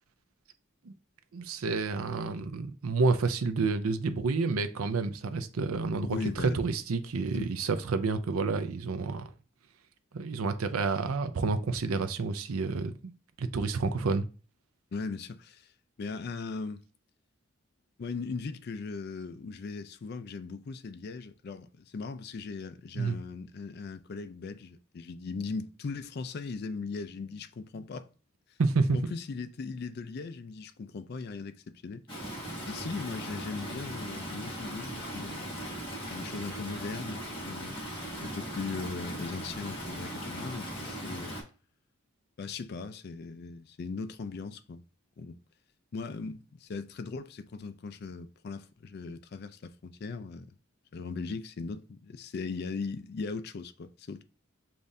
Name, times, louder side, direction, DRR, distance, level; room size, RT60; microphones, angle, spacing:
voice 1, 1.3-9.3 10.1-13.1 13.4-14.3 22.9-23.2 28.6-29.0, right 4 dB, 85° right, 0.5 m, -29 dB
voice 2, 6.0-6.6 7.3-7.5 14.9-15.7 16.0-16.8 18.0-28.1 28.9-32.0 32.6-35.6 36.1-37.8 38.2-41.4 42.4-44.8 45.2-45.4 45.9-50.6 50.9-54.2, left 4 dB, 50° left, 0.3 m, -39 dB
Stream, 32.1-41.4, right 1 dB, 25° left, 1.5 m, -39 dB
7.0 x 2.5 x 2.6 m
head